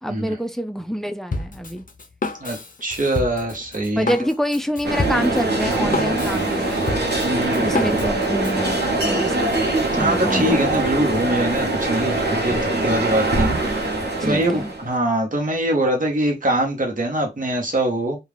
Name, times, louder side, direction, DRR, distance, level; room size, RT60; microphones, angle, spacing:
voice 1, 0.0-1.8 4.0-6.8 7.5-9.5 10.0-10.7 14.2-14.7, equal, ahead, 0.4 m, -26 dB
Drum kit, 1.3-8.6, left 3 dB, 55° left, 0.5 m, -30 dB
voice 2, 2.4-4.1 7.3-7.7 9.9-18.2, right 1 dB, 55° right, 0.8 m, -23 dB
sound 1, 4.8-14.9, right 2 dB, 90° right, 0.7 m, -22 dB
2.4 x 2.2 x 3.2 m
wide cardioid pair, 50°, 17 cm